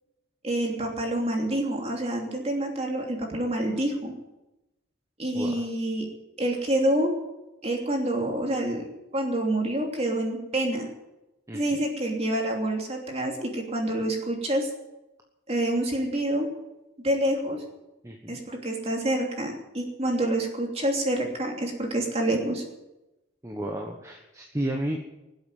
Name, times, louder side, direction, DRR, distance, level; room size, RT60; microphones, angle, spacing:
voice 1, 0.4-4.1 5.2-6.1 6.4-7.1 7.6-8.9 9.1-10.9 11.5-14.7 15.5-16.5 17.0-17.6 18.3-22.6, right 1 dB, 30° right, 1 dB, 3.0 m, -27 dB
voice 2, 5.3-5.7 11.5-11.8 18.0-18.4 23.4-25.0, right 1 dB, 15° right, 2 dB, 1.2 m, -32 dB
19.5 x 8.0 x 9.2 m, 0.98 s
head